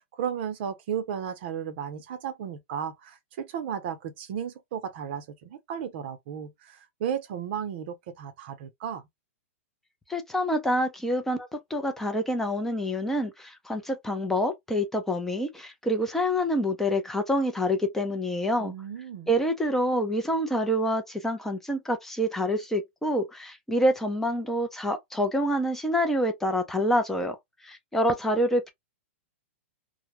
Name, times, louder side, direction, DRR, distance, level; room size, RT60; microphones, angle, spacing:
voice 1, 0.1-9.0 18.6-19.3, right 8 dB, 50° right, 0.6 m, -34 dB
voice 2, 10.1-18.7 19.3-27.4 27.6-28.7, equal, 5° left, 0.4 m, -27 dB
2.2 x 2.0 x 2.9 m
hypercardioid pair, 150°, 7 cm